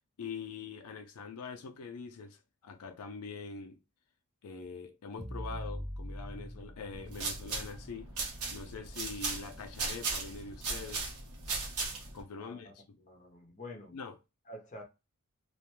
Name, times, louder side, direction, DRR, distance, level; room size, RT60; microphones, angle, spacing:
voice 1, 0.0-3.8 4.4-8.1 8.5-11.1 12.1-12.8 13.9-14.1, left 5 dB, 85° left, 0.4 m, -44 dB
sound 1, 5.2-8.3, equal, 20° right, 0.9 m, -43 dB
sound 2, 6.9-12.2, right 4 dB, 80° right, 0.9 m, -37 dB
voice 2, 12.4-14.0 14.5-14.8, left 1 dB, 35° left, 0.7 m, -48 dB
2.4 x 2.1 x 3.0 m
head